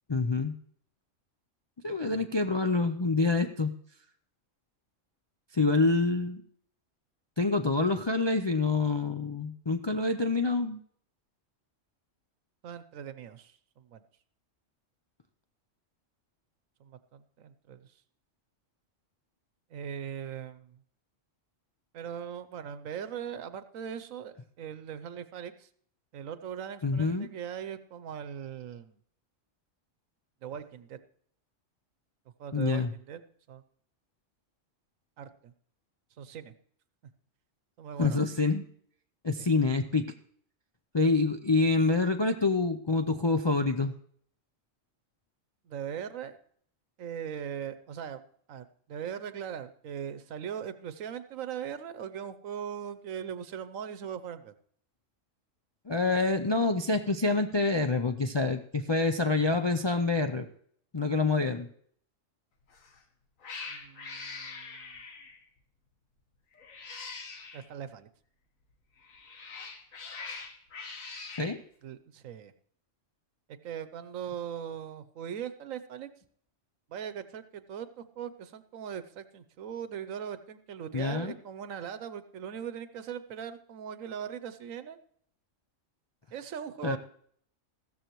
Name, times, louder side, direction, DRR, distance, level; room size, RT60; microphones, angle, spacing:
voice 1, 0.1-0.5 1.8-3.7 5.5-6.4 7.4-10.8 26.8-27.3 32.5-32.9 38.0-38.6 39.2-40.1 40.9-44.0 55.9-60.5 60.9-61.7 71.4-71.6 80.9-81.3 86.8-87.0, left 3 dB, 45° left, 5 dB, 0.3 m, -27 dB
voice 2, 12.6-14.0 16.8-17.8 19.7-20.8 21.9-25.7 26.1-29.0 30.4-31.0 32.4-33.2 33.5-33.6 35.2-35.5 36.2-36.5 37.8-38.2 39.4-39.5 45.6-46.4 47.0-48.2 48.5-54.5 63.7-65.0 67.5-68.1 71.8-72.5 73.6-76.1 76.9-85.0 86.3-87.0, right 8 dB, 80° right, 12 dB, 1.2 m, -40 dB
Cat, 62.7-63.0 63.4-65.4 66.6-67.6 69.0-71.6, left 4 dB, 85° left, 1.7 m, -43 dB
15.0 x 13.5 x 3.1 m, 0.63 s
omnidirectional pair, 1.4 m